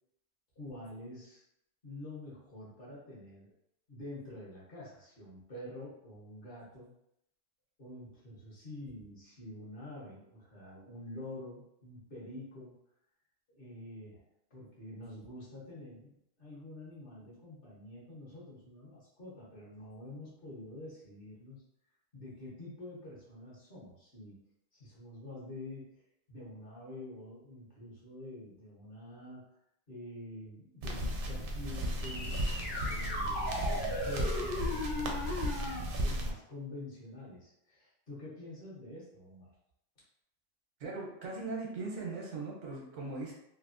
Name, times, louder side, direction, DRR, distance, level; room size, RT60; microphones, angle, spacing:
voice 1, 0.5-1.4 1.8-3.5 3.9-6.9 7.8-12.8 13.5-14.2 14.5-21.6 22.1-24.4 24.7-26.0 26.3-29.4 29.9-39.5, left 1 dB, 50° left, -6 dB, 1.2 m, -47 dB
sound 1, 30.8-36.3, equal, 60° right, 0.6 m, -35 dB
sound 2, 32.0-35.8, left 1 dB, 80° left, 1.1 m, -36 dB
voice 2, 40.8-43.3, right 3 dB, 85° right, -2 dB, 1.1 m, -39 dB
3.2 x 2.1 x 2.5 m, 0.79 s
omnidirectional pair, 1.2 m